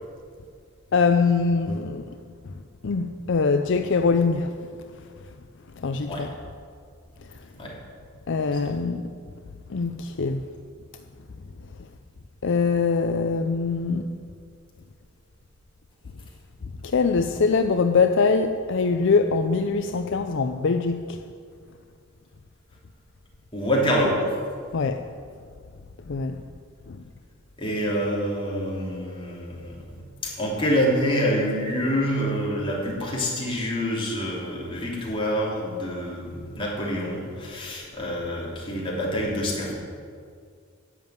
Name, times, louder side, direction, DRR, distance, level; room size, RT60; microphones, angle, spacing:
voice 1, 0.9-2.2 2.8-4.5 5.8-6.3 8.3-9.0 9.7-10.4 12.4-14.1 16.8-21.2 24.7-25.1 26.1-26.4 26.9-27.0, left 4 dB, 60° left, 7 dB, 0.5 m, -23 dB
voice 2, 23.5-24.3 27.6-29.8 30.2-39.7, equal, 25° left, -4 dB, 3.1 m, -26 dB
10.5 x 7.3 x 9.3 m, 2.1 s
head